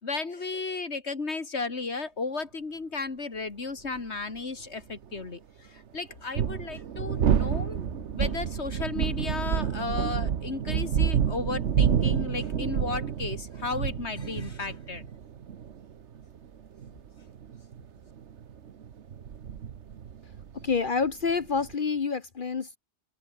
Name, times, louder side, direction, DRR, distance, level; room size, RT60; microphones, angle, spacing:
voice 1, 0.0-15.0, left 3 dB, 75° left, 2.7 m, -34 dB
sound 1, 4.0-4.1 6.1-21.7, right 8 dB, 80° right, 1.3 m, -29 dB
voice 2, 20.6-22.8, left 5 dB, 50° left, 1.1 m, -28 dB
omnidirectional pair, 1.2 m